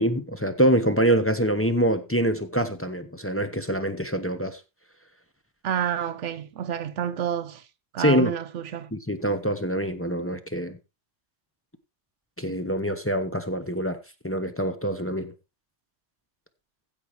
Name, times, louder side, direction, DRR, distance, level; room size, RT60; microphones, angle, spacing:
voice 1, 0.0-4.6 8.0-8.3 8.9-10.8 12.4-14.0 14.2-15.3, equal, 10° left, 0.9 m, -25 dB
voice 2, 5.6-7.6 7.9-8.9, right 9 dB, 85° right, 1.2 m, -29 dB
15.5 x 5.6 x 4.7 m
omnidirectional pair, 1.2 m